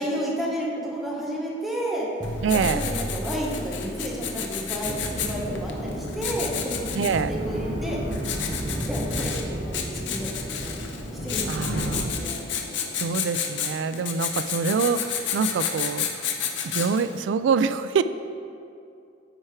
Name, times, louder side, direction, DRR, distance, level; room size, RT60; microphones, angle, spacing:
voice 1, 0.0-2.1 2.5-8.0 8.5-10.8 11.2-12.4, right 1 dB, ahead, -4 dB, 1.2 m, -32 dB
Writing, 2.2-17.2, left 7 dB, 85° left, 0.7 m, -32 dB
sound 1, 2.2-6.3, equal, 20° right, 1.4 m, -37 dB
voice 2, 2.4-2.8 7.0-7.4 11.5-12.1 13.0-16.3 16.6-18.0, right 5 dB, 85° right, 13 dB, 0.3 m, -25 dB
sound 2, 4.8-12.1, equal, 35° right, 0.7 m, -32 dB
9.1 x 4.4 x 4.8 m, 2.5 s
head